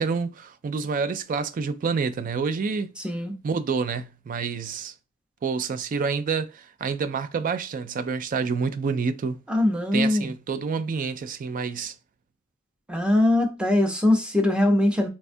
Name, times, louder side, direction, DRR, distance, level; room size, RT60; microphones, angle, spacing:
voice 1, 0.0-2.9 3.4-4.9 5.4-9.4 9.9-11.9, right 5 dB, 40° right, 0.3 m, -28 dB
voice 2, 9.5-10.3 12.9-15.1, left 1 dB, 5° right, 0.6 m, -21 dB
4.2 x 2.2 x 2.5 m
head